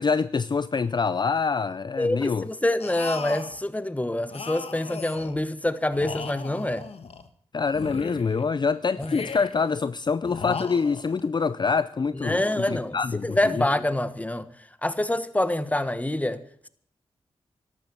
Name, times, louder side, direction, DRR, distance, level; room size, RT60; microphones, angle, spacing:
voice 1, 0.0-2.5 7.5-13.6, left 5 dB, 45° left, 0.5 m, -25 dB
voice 2, 2.0-6.8 9.0-9.2 12.1-13.0 13.2-14.4 14.8-16.4, left 1 dB, 15° left, 1.4 m, -26 dB
sound 1, 2.8-3.6 4.3-5.4 5.9-7.3 7.7-8.5 9.0-9.7 10.2-11.3, left 5 dB, 70° left, 1.4 m, -37 dB
14.0 x 12.0 x 6.2 m
cardioid pair, 55°, 11 cm